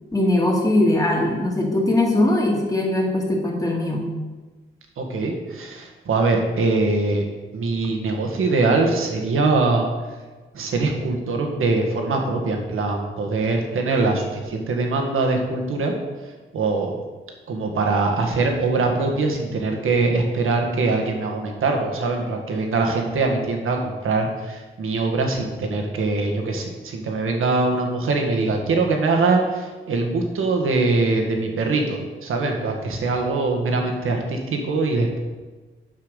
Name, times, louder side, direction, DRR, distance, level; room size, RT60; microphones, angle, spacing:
voice 1, 0.1-4.1, left 1 dB, 15° left, -1 dB, 2.3 m, -20 dB
voice 2, 5.0-7.2 7.5-9.9 10.5-15.9 16.5-16.9 17.5-35.2, right 3 dB, 80° right, 2 dB, 1.7 m, -22 dB
8.6 x 5.8 x 6.6 m, 1.3 s
cardioid pair, 85°, 21 cm